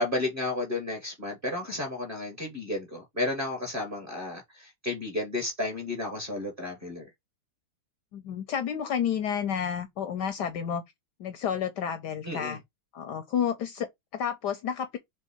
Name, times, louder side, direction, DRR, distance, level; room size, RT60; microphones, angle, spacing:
voice 1, 0.0-7.1 12.2-12.6, left 2 dB, 30° right, 1.2 m, -32 dB
voice 2, 8.1-10.8 11.2-12.6 12.9-15.0, left 8 dB, 70° left, 1.0 m, -30 dB
3.6 x 3.2 x 4.2 m
omnidirectional pair, 2.3 m